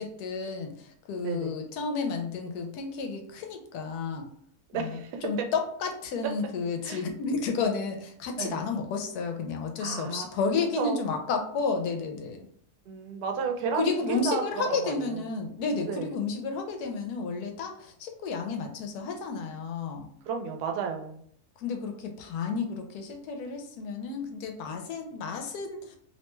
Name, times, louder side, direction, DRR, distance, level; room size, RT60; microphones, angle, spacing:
voice 1, 0.0-4.3 4.7-12.5 13.8-20.1 21.6-26.0, left 4 dB, 80° left, 4 dB, 1.1 m, -32 dB
voice 2, 1.2-1.5 4.7-5.5 6.8-7.0 8.4-8.6 9.8-10.3 10.8-11.0 12.9-14.4 14.7-15.2 15.9-16.1 20.3-21.2, right 5 dB, 90° right, 3 dB, 1.1 m, -32 dB
2.9 x 2.2 x 3.0 m, 0.66 s
omnidirectional pair, 1.6 m